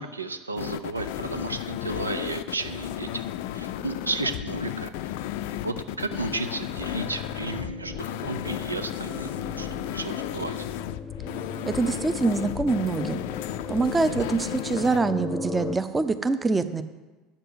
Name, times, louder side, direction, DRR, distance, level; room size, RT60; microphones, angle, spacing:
voice 1, 0.0-3.2 3.5-4.9 5.6-10.5, right 3 dB, 85° right, 9 dB, 0.5 m, -33 dB
sound 1, 0.6-15.0, left 12 dB, 60° left, 0.4 m, -34 dB
sound 2, 4.4-15.8, left 4 dB, 25° left, 0.7 m, -39 dB
voice 2, 11.7-13.2 13.7-16.8, right 3 dB, 15° right, 11 dB, 0.7 m, -25 dB
8.4 x 6.7 x 8.0 m, 1.2 s
figure-of-eight pair, 70°, 0 cm